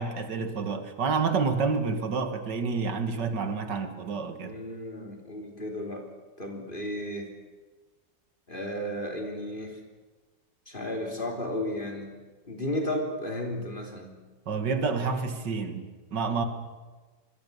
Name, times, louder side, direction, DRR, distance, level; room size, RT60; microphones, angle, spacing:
voice 1, 0.0-4.5 14.5-16.4, right 4 dB, 85° right, 8 dB, 2.5 m, -29 dB
voice 2, 4.4-6.1 6.4-7.3 8.5-9.8 10.7-12.2 12.5-14.2, left 1 dB, 30° left, 2 dB, 3.5 m, -34 dB
26.5 x 21.0 x 6.9 m, 1.3 s
omnidirectional pair, 1.8 m